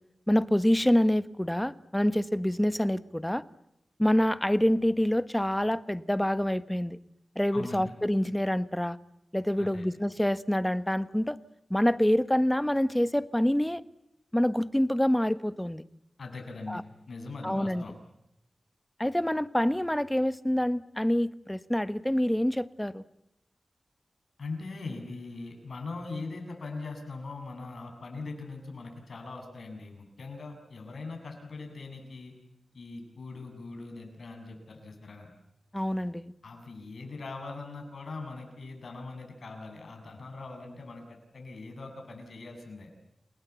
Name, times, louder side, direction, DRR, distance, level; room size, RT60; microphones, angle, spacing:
voice 1, 0.3-3.4 4.0-7.0 7.3-9.0 9.3-11.4 11.7-13.8 14.3-15.8 16.7-16.8 17.4-17.8 19.0-23.0 35.7-36.3, equal, 10° left, 13 dB, 1.4 m, -26 dB
voice 2, 7.5-7.9 9.6-9.9 16.2-17.9 24.4-32.3 32.7-35.3 36.4-42.9, left 3 dB, 85° left, 4 dB, 7.4 m, -41 dB
29.5 x 19.5 x 8.3 m, 0.85 s
cardioid pair, 45°, 0 cm